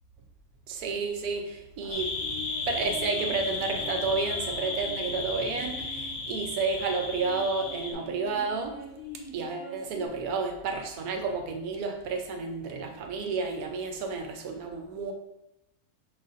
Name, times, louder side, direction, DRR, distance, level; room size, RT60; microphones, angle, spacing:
voice 1, 0.7-2.2 2.7-8.8 9.3-15.1, right 4 dB, 70° right, 4 dB, 1.1 m, -31 dB
sound 1, 1.8-6.1 6.7-10.1, left 2 dB, 85° left, 2.0 m, -45 dB
sound 2, 1.9-7.9, left 3 dB, 60° left, 1.2 m, -34 dB
5.0 x 4.1 x 2.5 m, 0.88 s
omnidirectional pair, 1.7 m